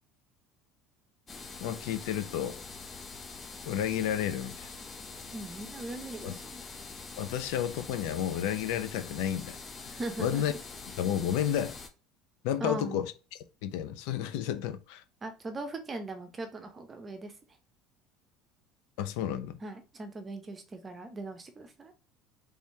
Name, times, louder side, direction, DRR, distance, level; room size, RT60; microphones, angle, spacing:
sound 1, 1.3-11.9, left 4 dB, 20° left, 0.5 m, -44 dB
voice 1, 1.6-2.6 3.6-4.7 6.2-6.4 7.2-10.5 10.9-11.8 12.4-13.1 13.6-15.0 19.0-19.6, left 10 dB, 75° left, 0.5 m, -31 dB
voice 2, 5.3-6.6 10.0-10.6 12.6-13.0 15.2-17.3 19.6-21.9, right 2 dB, 20° right, 0.7 m, -39 dB
3.3 x 3.3 x 2.7 m
cardioid pair, 145°, 0 cm